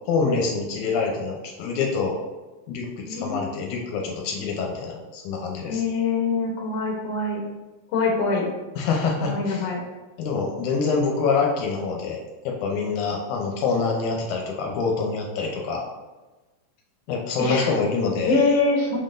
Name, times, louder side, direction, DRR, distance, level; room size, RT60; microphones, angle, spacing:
voice 1, 0.1-2.1 2.7-5.8 8.8-9.7 10.2-15.9 17.1-18.4, left 4 dB, 85° left, 0 dB, 2.1 m, -26 dB
voice 2, 3.1-3.5 5.7-7.4 7.9-8.5 9.2-9.8 17.4-17.7 18.3-19.0, left 3 dB, 65° left, -1 dB, 1.8 m, -24 dB
5.5 x 3.8 x 2.5 m, 1.2 s
omnidirectional pair, 3.5 m